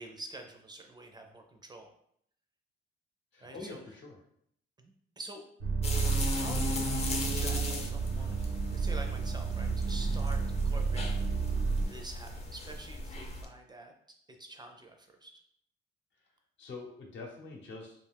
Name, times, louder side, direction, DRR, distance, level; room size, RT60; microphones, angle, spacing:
voice 1, 0.0-1.9 3.4-3.8 4.8-5.5 6.3-11.2 11.8-13.9 14.4-15.3, right 2 dB, 20° right, 4 dB, 0.4 m, -47 dB
voice 2, 3.3-4.2 9.9-10.2 16.6-18.1, left 3 dB, 70° left, 1 dB, 0.8 m, -45 dB
sound 1, 5.6-11.8, right 4 dB, 90° right, 0.7 m, -31 dB
sound 2, 5.8-13.4, left 2 dB, 35° left, 0.5 m, -37 dB
2.4 x 2.3 x 3.3 m, 0.69 s
cardioid pair, 90°, 20 cm